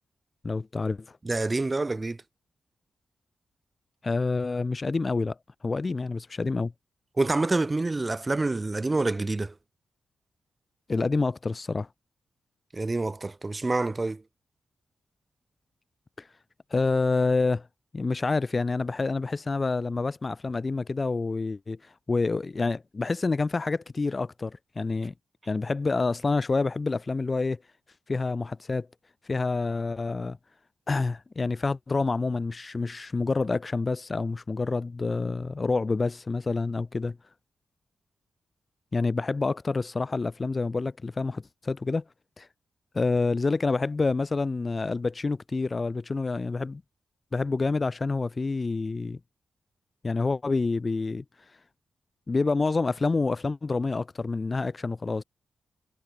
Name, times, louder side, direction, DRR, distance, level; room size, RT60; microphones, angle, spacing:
voice 1, 0.4-1.2 4.0-5.4 5.6-6.7 10.9-11.9 16.2-16.3 16.7-17.7 17.9-25.1 25.5-27.6 28.1-28.9 29.2-30.4 30.9-37.2 38.9-42.0 42.4-42.5 42.9-46.8 47.3-49.2 50.0-51.2 52.3-55.2, left 3 dB, 25° left, 3.4 m, -28 dB
voice 2, 1.2-2.2 7.2-9.5 12.7-14.2, right 2 dB, 20° right, 5.9 m, -27 dB
wide cardioid pair, 145°, 0 cm